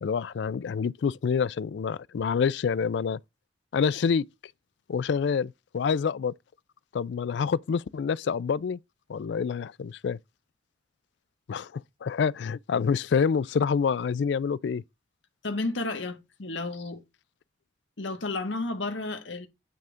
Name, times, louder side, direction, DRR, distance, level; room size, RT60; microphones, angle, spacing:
voice 1, 0.0-3.2 3.7-4.2 4.9-6.3 6.9-8.8 9.1-10.2 11.5-14.8, left 6 dB, 70° left, 0.3 m, -27 dB
voice 2, 15.4-17.0 18.0-19.5, left 2 dB, 85° left, 1.4 m, -32 dB
9.2 x 3.5 x 3.7 m
head